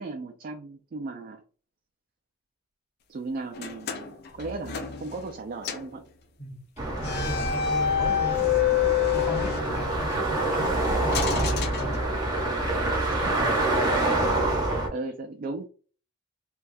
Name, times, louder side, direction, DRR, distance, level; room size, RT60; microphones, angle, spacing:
voice 1, 0.0-1.4 3.1-6.1 12.9-13.7 14.2-15.7, right 3 dB, 45° right, 0.3 m, -37 dB
sound 1, 3.5-5.4 5.6-6.0 7.0-10.2 11.1-12.5, left 9 dB, 50° left, 0.4 m, -28 dB
sound 2, 6.8-14.9, right 2 dB, 20° right, 0.7 m, -26 dB
voice 2, 7.0-8.9 9.1-12.0, equal, 35° left, 1.1 m, -37 dB
3.3 x 2.3 x 2.6 m
head